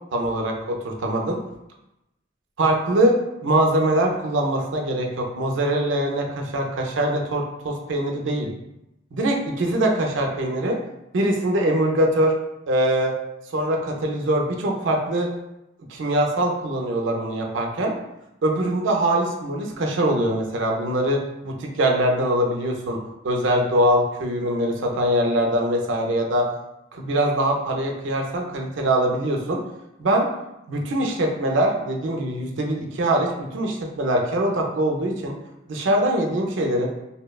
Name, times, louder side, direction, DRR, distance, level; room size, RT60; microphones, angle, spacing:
voice 1, 0.1-1.4 2.6-3.2 3.4-8.5 9.1-10.8 11.1-12.3 12.7-13.1 13.5-15.3 15.9-17.9 18.4-23.0 23.2-26.5 26.9-29.6 30.0-30.3 30.7-35.4 35.7-36.9, right 1 dB, 75° right, 1 dB, 0.4 m, -23 dB
2.7 x 2.1 x 2.2 m, 0.90 s
head